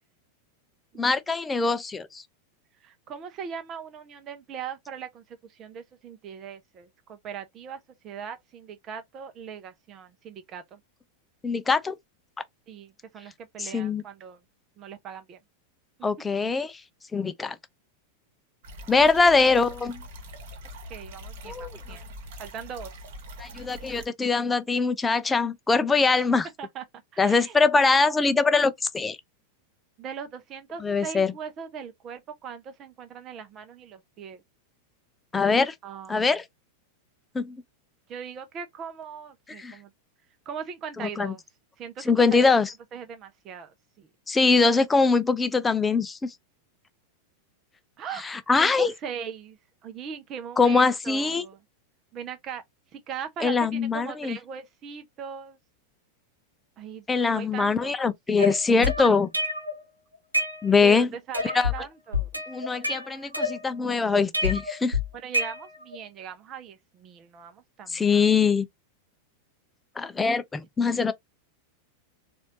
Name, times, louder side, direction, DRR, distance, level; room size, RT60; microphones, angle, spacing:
voice 1, 1.0-2.2 11.4-11.9 13.6-14.0 16.0-16.8 17.1-17.6 18.9-20.0 21.4-21.8 23.4-26.5 27.2-29.2 30.8-31.3 35.3-35.7 36.1-36.4 37.3-37.6 39.6-39.8 41.0-41.3 42.1-42.7 44.3-46.3 48.2-48.9 50.6-51.4 53.4-54.4 57.1-59.3 60.6-61.1 61.5-61.7 62.5-65.0 67.9-68.7 70.0-71.1, left 4 dB, 15° left, 0.5 m, -23 dB
voice 2, 2.8-10.8 12.7-14.4 14.8-15.4 20.9-22.1 22.4-23.0 26.6-26.8 27.1-27.6 30.0-34.4 35.8-36.3 38.1-39.9 40.5-41.4 41.8-42.5 42.9-44.1 48.0-48.3 48.6-51.6 52.1-52.6 52.9-55.6 56.8-58.0 60.8-62.4 65.1-68.3, right 7 dB, 30° right, 0.7 m, -40 dB
sound 1, 18.6-24.1, equal, 50° right, 1.3 m, -43 dB
sound 2, 58.4-59.8 60.1-61.0 61.3-61.8 62.1-63.9 64.3-66.0, left 2 dB, 90° right, 1.0 m, -28 dB
4.2 x 2.6 x 2.9 m
figure-of-eight pair, 90°, 0 cm